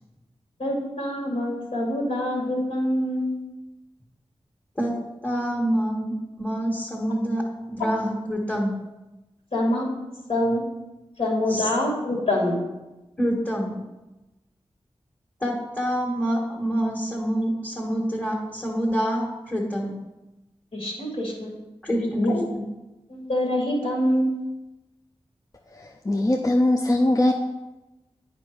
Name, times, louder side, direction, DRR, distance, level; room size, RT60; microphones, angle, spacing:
voice 1, 0.6-3.4 9.5-9.8 10.3-10.6 11.2-12.6 20.7-21.5 22.1-22.4 23.1-24.4, left 1 dB, 70° left, -3 dB, 2.7 m, -25 dB
voice 2, 5.2-8.7 11.5-11.7 13.2-13.8 15.4-19.9 21.8-22.6, equal, 10° left, -2 dB, 1.8 m, -26 dB
voice 3, 25.7-27.3, left 1 dB, 35° left, 2 dB, 0.7 m, -21 dB
9.1 x 5.2 x 4.7 m, 1.0 s
cardioid pair, 55°, 10 cm